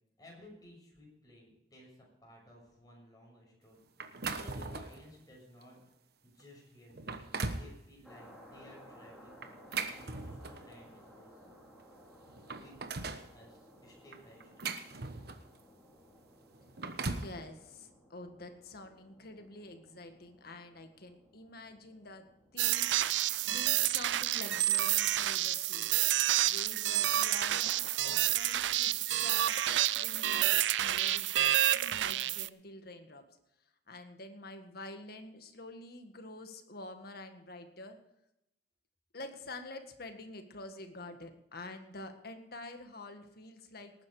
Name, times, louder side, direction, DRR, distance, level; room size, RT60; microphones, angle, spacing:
voice 1, 0.2-5.7 6.2-11.4 12.5-12.8 13.3-14.7, left 1 dB, 20° left, -2 dB, 6.5 m, -57 dB
sound 1, 4.0-5.0 5.6-5.8 6.4-6.5 6.9-7.7 9.4-10.7 11.8-11.9 12.2-13.3 14.1-15.6 16.5-17.4, right 4 dB, 60° right, 1.2 m, -39 dB
sound 2, 8.0-24.6, equal, ahead, 3.0 m, -58 dB
voice 2, 17.0-22.3 22.5-23.0 23.4-26.0 26.4-33.3 33.9-38.0 39.1-43.9, left 2 dB, 60° left, 7 dB, 1.8 m, -48 dB
sound 3, 22.6-32.5, right 13 dB, 85° right, 0.5 m, -29 dB
18.5 x 9.8 x 4.9 m, 0.85 s
head